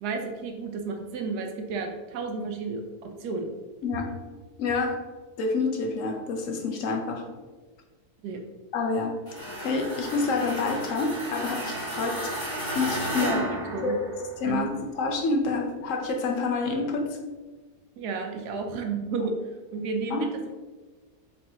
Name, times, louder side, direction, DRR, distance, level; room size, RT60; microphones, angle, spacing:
voice 1, 0.0-3.5 8.2-8.4 13.2-14.0 14.5-14.8 18.0-19.3 19.7-20.5, right 4 dB, 90° right, 4 dB, 1.2 m, -32 dB
voice 2, 4.6-5.0 5.4-7.2 8.7-9.1 9.6-12.3 12.7-13.3 13.8-14.0 14.4-17.2 20.1-20.3, left 3 dB, 65° left, 2 dB, 0.9 m, -28 dB
sound 1, 9.3-14.5, right 1 dB, 30° left, 1.7 m, -33 dB
4.2 x 3.6 x 2.8 m, 1.3 s
omnidirectional pair, 1.6 m